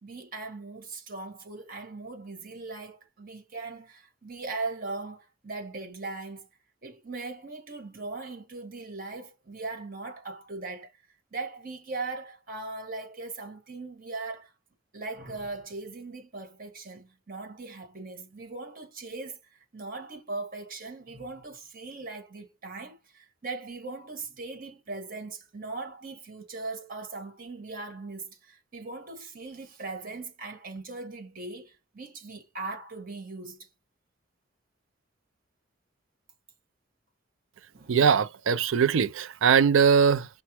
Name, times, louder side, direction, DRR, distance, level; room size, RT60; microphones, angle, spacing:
voice 1, 0.0-6.5 6.8-10.9 11.3-14.5 14.9-33.7 37.7-38.0, right 3 dB, 45° right, 1.7 m, -39 dB
voice 2, 37.9-40.3, right 6 dB, 75° right, 0.4 m, -21 dB
5.6 x 2.1 x 2.9 m
head